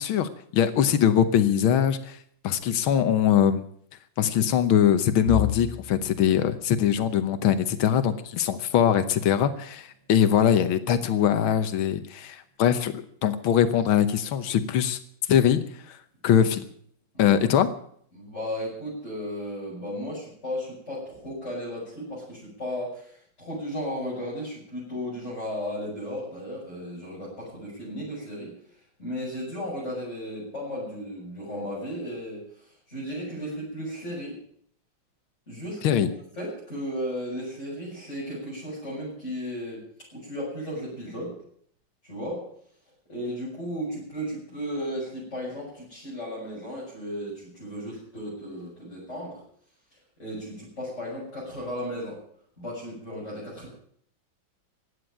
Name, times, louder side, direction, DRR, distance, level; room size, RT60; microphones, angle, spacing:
voice 1, 0.0-2.2 2.4-3.6 4.2-15.0 15.3-16.0 16.2-16.7 17.2-17.7 35.8-36.1, left 9 dB, 90° left, 11 dB, 1.8 m, -22 dB
sound 1, 14.8-17.1 17.5-17.8 18.1-18.3 19.2-19.6, left 9 dB, 75° right, 5.4 m, -40 dB
voice 2, 18.1-23.1 23.4-28.5 29.0-32.4 32.9-34.3 35.5-36.1 36.4-39.8 40.1-41.3 42.1-42.4 43.1-49.4 50.2-52.2 52.6-53.7, equal, 35° left, -8 dB, 7.7 m, -35 dB
16.0 x 9.9 x 9.0 m, 0.63 s
omnidirectional pair, 2.2 m